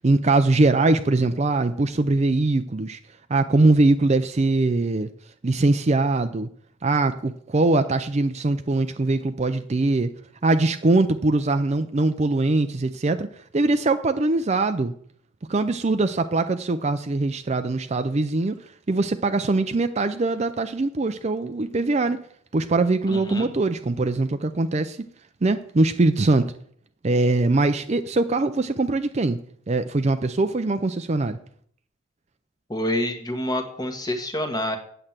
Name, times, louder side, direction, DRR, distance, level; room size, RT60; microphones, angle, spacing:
voice 1, 0.0-3.0 3.3-5.1 5.4-6.5 6.8-10.1 10.4-13.3 13.5-14.9 15.5-18.6 18.9-22.2 22.5-25.0 25.4-26.5 27.0-29.4 29.7-31.4, right 2 dB, 30° right, 9 dB, 0.5 m, -22 dB
voice 2, 23.1-23.5 32.7-34.8, left 1 dB, 20° left, 6 dB, 1.4 m, -27 dB
8.8 x 7.8 x 7.3 m, 0.62 s
head